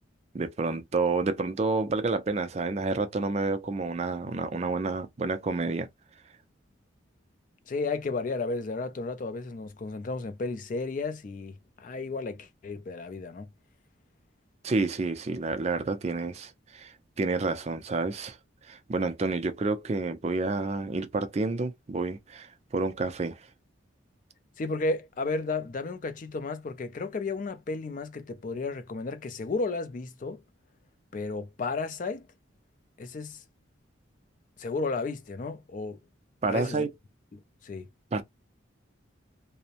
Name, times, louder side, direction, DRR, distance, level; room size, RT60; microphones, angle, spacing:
voice 1, 0.3-5.9 14.6-18.4 18.6-23.5 36.4-36.9 38.1-38.2, right 3 dB, 35° right, 0.4 m, -29 dB
voice 2, 7.7-13.5 24.6-30.4 31.1-32.3 33.0-33.4 34.6-36.0 36.5-36.9 37.3-37.9, left 3 dB, 40° left, 0.3 m, -33 dB
2.6 x 2.0 x 2.7 m
head